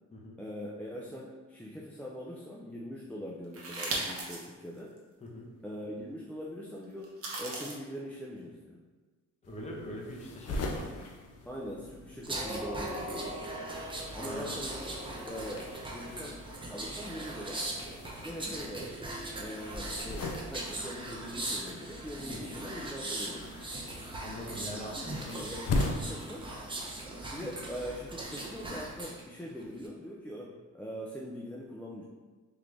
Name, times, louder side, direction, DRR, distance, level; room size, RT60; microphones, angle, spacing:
voice 1, 0.4-5.0 5.6-8.8 11.5-13.4 14.1-15.0 15.3-16.4 16.7-17.7 18.2-18.9 19.4-23.7 24.8-26.5 27.2-32.1, equal, 5° left, -4 dB, 0.4 m, -42 dB
sound 1, 3.5-4.5 5.0-5.1 7.0-7.7, right 2 dB, 50° right, 1.0 m, -36 dB
sound 2, 9.4-25.9, left 2 dB, 55° left, 0.6 m, -41 dB
voice 2, 9.4-11.1 14.1-14.6 22.3-22.5 24.2-25.5, equal, 20° left, -2 dB, 1.0 m, -42 dB
sound 3, 12.2-29.2 29.6-29.9, right 1 dB, 15° right, 0.8 m, -39 dB
3.7 x 3.2 x 3.3 m, 1.3 s
cardioid pair, 90°, 30 cm